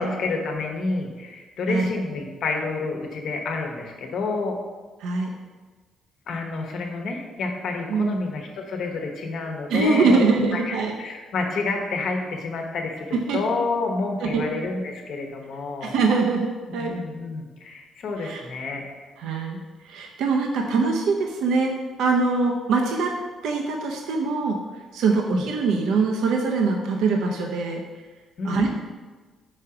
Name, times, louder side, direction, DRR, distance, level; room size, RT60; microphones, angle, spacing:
voice 1, 0.0-4.6 6.3-15.9 16.8-18.8 25.1-25.4 28.4-28.7, left 3 dB, 70° left, 2 dB, 1.0 m, -29 dB
voice 2, 7.9-8.2 9.7-10.9 13.1-13.4 14.2-14.4 15.8-16.9 18.2-18.4 19.2-21.7 22.0-23.2 23.4-24.6 24.9-27.8 28.4-28.7, right 4 dB, 85° right, 1 dB, 0.6 m, -23 dB
5.1 x 3.8 x 5.7 m, 1.3 s
cardioid pair, 90°, 0 cm